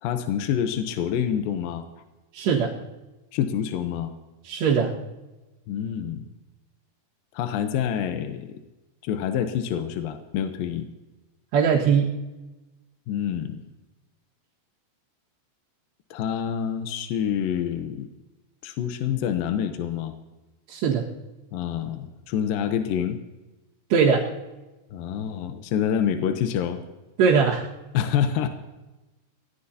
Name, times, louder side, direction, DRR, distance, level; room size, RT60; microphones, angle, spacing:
voice 1, 0.0-1.9 3.3-4.1 5.7-6.3 7.3-8.6 9.0-10.9 13.1-13.6 16.1-18.1 18.6-20.1 21.5-23.2 24.9-26.8 27.9-28.5, left 9 dB, 75° left, 7 dB, 2.2 m, -27 dB
voice 2, 2.3-2.7 4.5-4.9 11.5-12.1 20.7-21.1 23.9-24.3 27.2-27.6, right 6 dB, 75° right, -7 dB, 3.7 m, -20 dB
23.0 x 18.0 x 2.8 m, 1.1 s
omnidirectional pair, 5.0 m